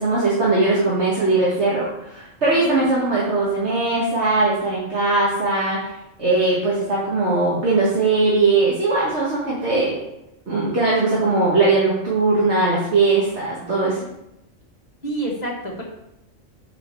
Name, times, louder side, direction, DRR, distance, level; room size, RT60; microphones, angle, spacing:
voice 1, 0.0-5.9 6.2-10.0 10.5-14.0, right 3 dB, 65° right, -6 dB, 1.9 m, -20 dB
voice 2, 2.5-2.8 13.1-13.7 15.0-15.9, right 1 dB, 35° left, -2 dB, 1.8 m, -30 dB
6.4 x 5.1 x 6.7 m, 0.86 s
omnidirectional pair, 1.2 m